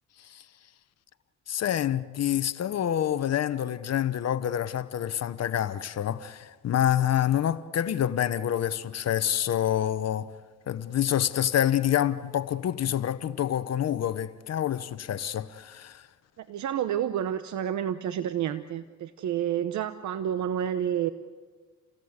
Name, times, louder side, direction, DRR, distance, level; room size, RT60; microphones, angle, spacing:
voice 1, 1.5-10.3 10.7-16.0, left 10 dB, 55° left, 1.0 m, -27 dB
voice 2, 16.4-21.1, right 10 dB, 70° right, 0.9 m, -29 dB
29.5 x 18.0 x 8.1 m
cardioid pair, 90°, 30 cm